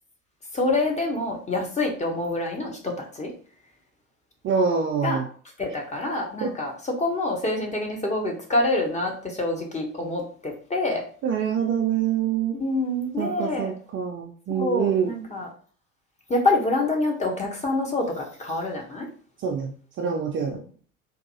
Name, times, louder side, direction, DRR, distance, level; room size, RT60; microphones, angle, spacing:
voice 1, 0.5-3.3 5.0-5.2 5.6-11.0 12.5-13.7 14.5-15.5 16.3-19.1, left 2 dB, 15° left, 1 dB, 0.9 m, -26 dB
voice 2, 4.4-5.2 6.4-6.5 11.2-12.5 13.2-15.1 19.4-20.6, right 7 dB, 30° right, 1 dB, 0.5 m, -25 dB
4.0 x 2.6 x 2.7 m, 0.43 s
figure-of-eight pair, 70°, 42 cm